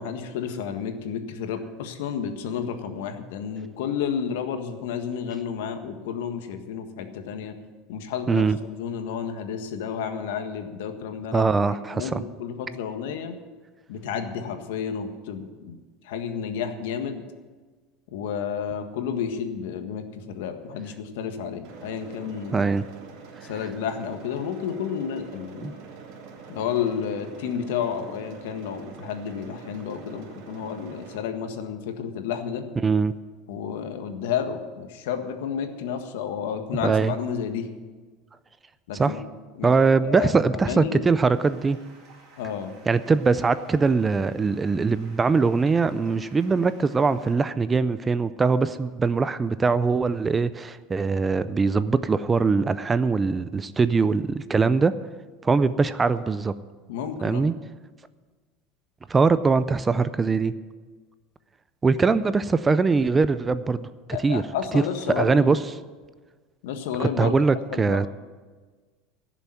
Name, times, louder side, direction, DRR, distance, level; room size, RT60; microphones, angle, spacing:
voice 1, 0.0-7.5 7.9-13.4 13.9-15.8 16.0-17.2 18.1-22.7 23.4-25.7 26.5-32.6 33.5-37.7 38.9-39.3 39.6-39.7 40.0-41.1 42.4-42.7 56.9-57.5 64.1-65.6 66.6-67.4 67.7-68.1, left 7 dB, 85° left, 7 dB, 1.6 m, -31 dB
voice 2, 8.3-8.6 11.3-12.2 22.5-22.8 25.6-25.7 32.8-33.2 36.8-37.1 38.9-39.2 39.6-41.8 42.9-54.9 55.4-56.5 57.2-57.5 59.1-60.5 61.8-63.9 64.2-64.4 64.7-64.8 65.2-65.6 67.0-68.1, right 4 dB, 15° right, 14 dB, 0.4 m, -22 dB
sound 1, 21.6-31.2, right 5 dB, 50° right, 2.2 m, -44 dB
Stream, 41.3-47.4, right 3 dB, 35° right, 3.0 m, -54 dB
16.0 x 7.0 x 9.2 m, 1.4 s
cardioid pair, 170°, 0 cm